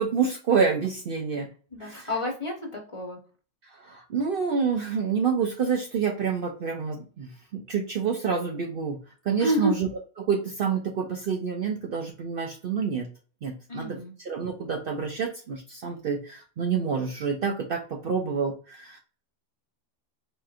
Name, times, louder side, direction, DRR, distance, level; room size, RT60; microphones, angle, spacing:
voice 1, 0.0-1.5 1.8-2.1 3.8-9.0 9.3-9.9 10.2-13.1 13.4-19.0, right 6 dB, 60° right, 2 dB, 0.6 m, -28 dB
voice 2, 1.7-3.2 9.4-9.7 13.7-14.1, equal, 30° left, 0 dB, 0.9 m, -29 dB
4.4 x 3.0 x 2.4 m, 0.39 s
omnidirectional pair, 1.3 m